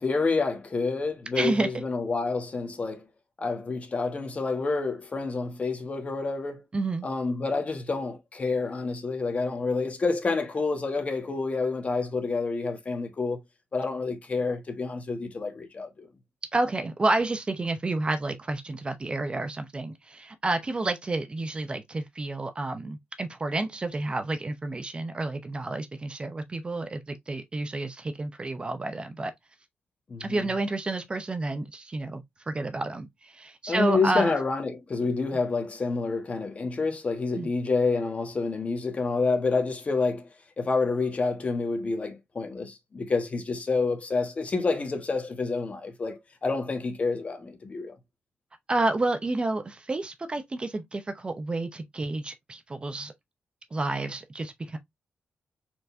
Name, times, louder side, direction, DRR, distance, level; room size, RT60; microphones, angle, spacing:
voice 1, 0.0-3.1 3.4-6.6 7.0-13.4 13.7-16.1 30.1-30.4 33.7-40.3 40.6-48.0, left 4 dB, 35° left, 1.3 m, -28 dB
voice 2, 1.4-1.7 6.7-7.1 16.5-29.3 30.2-34.3 37.3-37.5 48.7-53.1 53.7-54.8, right 2 dB, 25° right, 0.7 m, -30 dB
4.5 x 3.9 x 2.6 m
cardioid pair, 110°, 4 cm